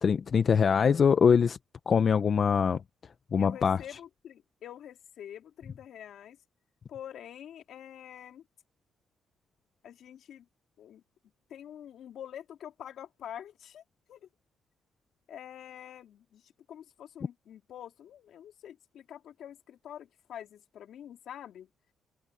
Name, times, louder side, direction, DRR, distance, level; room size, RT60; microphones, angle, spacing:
voice 1, 0.0-1.6 1.9-2.8 3.3-3.8, left 6 dB, 45° left, 0.7 m, -23 dB
voice 2, 3.4-6.4 6.9-8.4 9.8-10.5 10.8-11.0 11.5-13.8 14.1-14.3 15.3-21.7, left 10 dB, 70° left, 3.7 m, -46 dB
cardioid pair, 90°, 0 cm